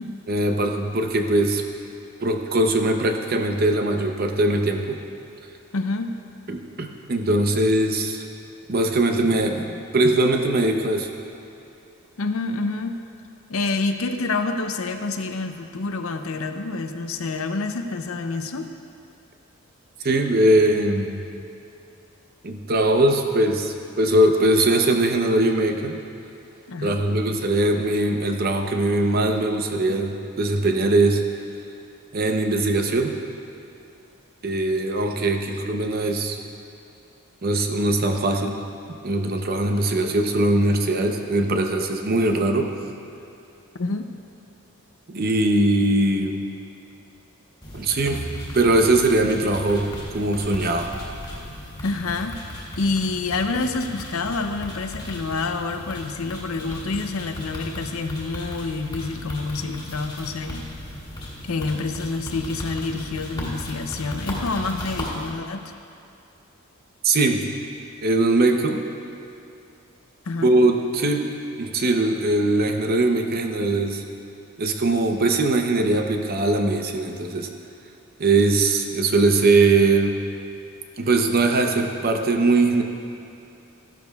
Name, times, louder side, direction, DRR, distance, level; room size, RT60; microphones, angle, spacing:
voice 1, 0.3-1.6 2.2-5.0 6.5-8.2 8.7-11.1 20.0-21.2 22.4-26.0 26.8-31.2 32.1-33.1 34.4-36.4 37.4-38.6 39.0-42.7 45.1-46.4 47.7-48.3 48.5-49.9 50.1-50.9 67.0-67.4 68.0-68.8 70.4-71.3 71.6-74.0 74.6-77.5 78.2-80.2 81.0-82.8, right 2 dB, 45° right, 4 dB, 0.7 m, -21 dB
voice 2, 5.7-6.2 12.2-13.0 13.5-18.7 26.7-27.0 43.8-44.1 51.8-52.4 52.8-60.7 61.4-65.7 70.2-70.5, left 3 dB, 65° left, 7 dB, 0.6 m, -27 dB
sound 1, 47.6-65.3, equal, 20° left, 2.0 m, -36 dB
14.5 x 11.5 x 2.3 m, 2.7 s
head